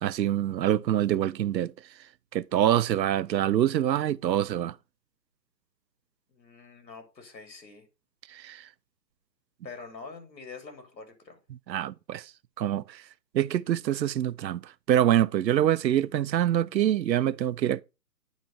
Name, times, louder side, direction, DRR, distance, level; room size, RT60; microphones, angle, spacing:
voice 1, 0.0-1.7 2.3-4.7 8.3-8.7 11.7-12.3 12.6-13.0 13.3-17.8, right 11 dB, 90° right, 0.6 m, -25 dB
voice 2, 6.3-7.9 9.6-11.4, left 4 dB, 90° left, 2.9 m, -45 dB
9.2 x 3.2 x 5.4 m
hypercardioid pair, 175°, 50 cm